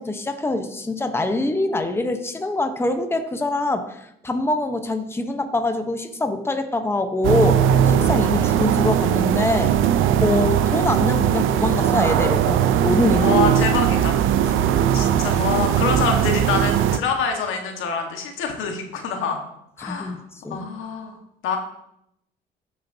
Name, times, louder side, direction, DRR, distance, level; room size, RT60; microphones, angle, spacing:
voice 1, 0.0-9.8 10.2-13.3 14.5-14.6 15.0-15.1 19.8-20.2 20.4-20.7, left 2 dB, 10° left, 6 dB, 0.9 m, -24 dB
sound 1, 7.2-17.0, right 9 dB, 85° right, 0.5 m, -19 dB
voice 2, 13.2-14.2 14.9-19.4 19.8-20.2 20.5-21.2 21.4-21.6, left 5 dB, 85° left, 3 dB, 1.5 m, -25 dB
14.5 x 6.4 x 2.7 m, 0.79 s
cardioid pair, 90°, 20 cm